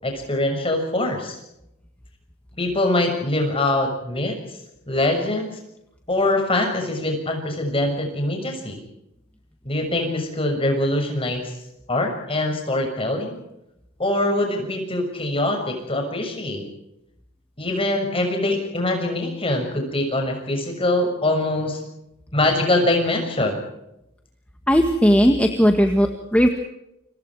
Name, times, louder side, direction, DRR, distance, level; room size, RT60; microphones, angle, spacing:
voice 1, 0.0-1.4 2.6-4.4 4.9-5.6 6.1-8.8 9.6-11.5 11.9-13.4 14.0-16.6 17.6-21.8 22.3-23.6, left 1 dB, 25° left, 3 dB, 6.5 m, -23 dB
voice 2, 24.7-26.5, equal, 5° left, 4 dB, 1.7 m, -17 dB
29.5 x 25.0 x 4.9 m, 0.86 s
head